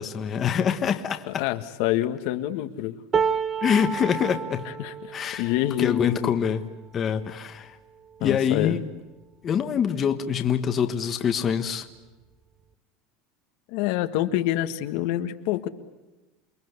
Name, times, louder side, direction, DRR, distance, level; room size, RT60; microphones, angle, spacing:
voice 1, 0.0-1.4 3.6-4.7 5.1-5.5 5.8-6.7 6.9-7.8 8.2-8.9 9.4-11.9, left 7 dB, 25° left, 7 dB, 1.4 m, -25 dB
voice 2, 1.3-3.0 4.8-5.1 5.4-6.3 8.2-8.8 13.7-15.7, left 14 dB, 60° left, 8 dB, 1.6 m, -26 dB
sound 1, 3.1-9.3 9.9-10.1 10.4-11.1 12.1-12.2, right 6 dB, 20° right, 0.9 m, -32 dB
29.0 x 22.0 x 8.2 m, 1.1 s
supercardioid pair, 165°, 0 cm